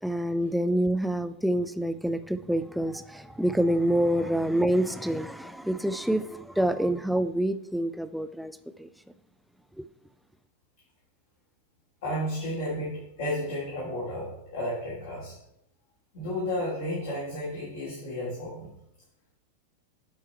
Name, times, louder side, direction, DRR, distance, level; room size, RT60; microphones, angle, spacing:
voice 1, 0.0-8.9 9.8-9.9, right 1 dB, ahead, 0.3 m, -27 dB
voice 2, 12.0-15.3 16.1-18.7, left 1 dB, 55° left, 2.9 m, -32 dB
10.0 x 4.6 x 4.4 m
figure-of-eight pair, 90°, 0 cm